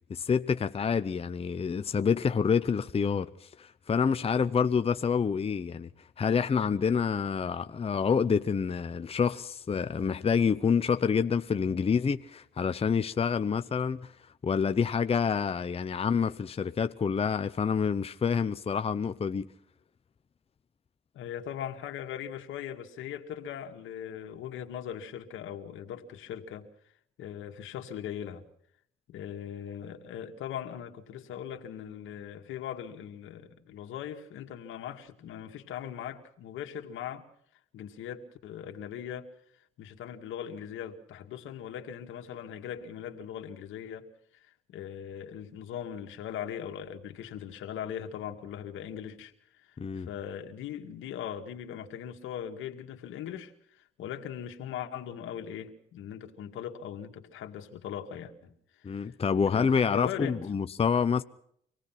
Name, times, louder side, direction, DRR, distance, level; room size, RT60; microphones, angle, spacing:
voice 1, 0.1-5.9 6.2-14.1 14.4-19.5 49.8-50.1 58.8-61.2, left 6 dB, 30° left, 0.7 m, -27 dB
voice 2, 21.1-26.7 27.2-28.4 29.1-37.2 37.7-39.3 39.8-44.1 44.3-59.1 59.5-60.4, left 9 dB, 85° left, 2.1 m, -40 dB
25.5 x 18.0 x 5.9 m
cardioid pair, 90°, 20 cm